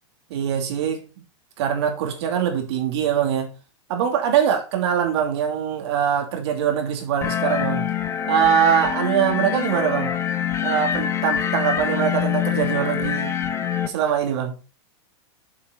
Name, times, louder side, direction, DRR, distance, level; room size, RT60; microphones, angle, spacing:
voice 1, 0.3-1.1 1.6-3.5 3.9-7.9 8.3-10.1 10.6-13.3 13.9-14.5, right 8 dB, 60° right, 3.0 m, -22 dB
sound 1, 7.2-13.9, left 9 dB, 15° left, 0.8 m, -25 dB
7.5 x 6.3 x 4.1 m
supercardioid pair, 150°, 16 cm